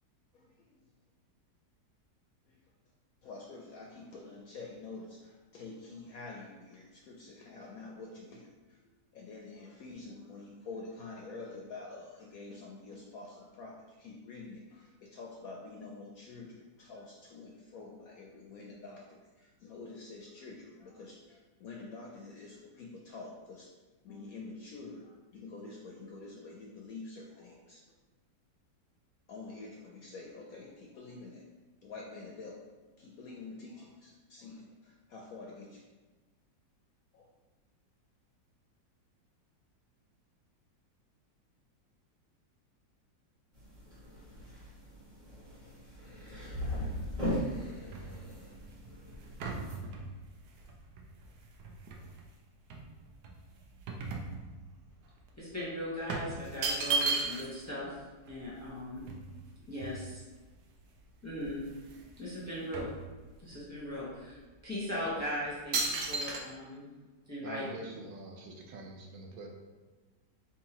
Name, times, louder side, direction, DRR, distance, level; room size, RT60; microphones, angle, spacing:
voice 1, 0.3-0.8 2.4-2.6 3.2-8.8 9.1-23.7 24.0-27.8 29.3-31.4 31.8-32.7 33.0-35.8 37.1-37.3, left 3 dB, 70° left, -1 dB, 0.9 m, -47 dB
sound 1, 43.5-49.8, equal, 20° right, 1.2 m, -39 dB
sound 2, 47.1-52.3 52.7-54.9 55.2-55.4 56.1-57.7 58.0-58.1 58.3-60.4 61.0-61.1 61.3-62.1 62.4-63.6 64.2-64.3 64.9-65.2 65.7-66.4, right 3 dB, 70° right, 1.1 m, -36 dB
voice 2, 55.3-58.0 58.3-59.0 59.7-60.2 61.2-61.6 62.2-62.9 63.4-64.4 64.6-66.9 67.3-67.7, left 1 dB, 15° left, -7 dB, 0.6 m, -38 dB
voice 3, 67.4-69.5, right 2 dB, 85° right, 1 dB, 1.4 m, -44 dB
4.3 x 3.7 x 2.9 m, 1.3 s
omnidirectional pair, 2.0 m